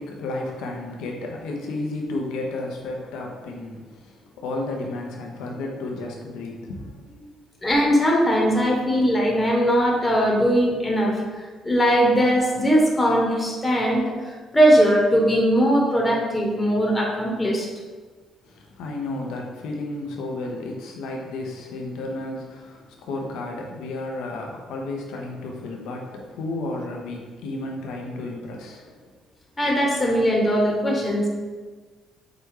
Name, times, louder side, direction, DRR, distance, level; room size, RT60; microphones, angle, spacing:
voice 1, 0.0-7.3 18.4-29.1, left 2 dB, 80° left, 0 dB, 0.8 m, -32 dB
voice 2, 7.6-17.7 29.6-31.3, equal, 15° left, -2 dB, 1.1 m, -20 dB
5.0 x 2.2 x 4.8 m, 1.4 s
supercardioid pair, 70°, 0 cm